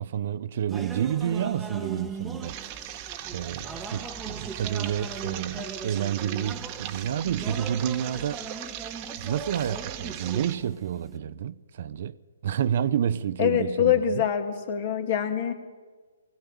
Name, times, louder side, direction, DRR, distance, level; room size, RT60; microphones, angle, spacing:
voice 1, 0.0-2.9 3.3-8.4 9.2-12.2 12.4-14.2, right 9 dB, 50° right, 0.7 m, -29 dB
sound 1, 0.7-11.2, right 4 dB, 5° right, 1.1 m, -40 dB
sound 2, 2.4-10.6, right 12 dB, 30° right, 1.2 m, -39 dB
voice 2, 13.4-15.5, left 9 dB, 45° left, 2.4 m, -24 dB
20.0 x 15.5 x 8.4 m
hypercardioid pair, 145°, 0 cm